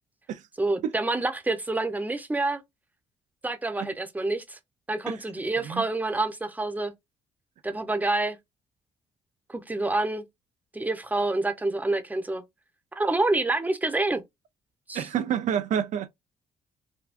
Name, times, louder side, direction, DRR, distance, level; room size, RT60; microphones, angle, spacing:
voice 1, 0.6-2.6 3.4-4.6 4.9-6.9 7.6-8.4 9.5-10.2 10.7-12.4 13.0-14.2 14.9-15.1, right 2 dB, 10° right, 0.8 m, -27 dB
voice 2, 14.9-16.1, right 9 dB, 65° right, 0.4 m, -28 dB
3.5 x 2.2 x 2.5 m
cardioid pair, 75°, 13 cm